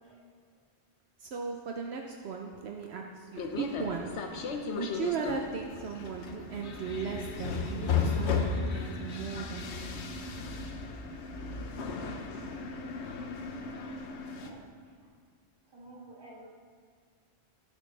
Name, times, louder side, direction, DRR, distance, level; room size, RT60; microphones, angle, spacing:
voice 1, 1.2-4.1 4.7-10.0, right 5 dB, 70° right, 2 dB, 0.9 m, -37 dB
sound 1, 3.4-14.5, left 5 dB, 80° left, 1.1 m, -35 dB
voice 2, 15.7-16.5, right 1 dB, 20° right, -5 dB, 2.0 m, -50 dB
16.0 x 6.5 x 3.3 m, 2.1 s
omnidirectional pair, 1.1 m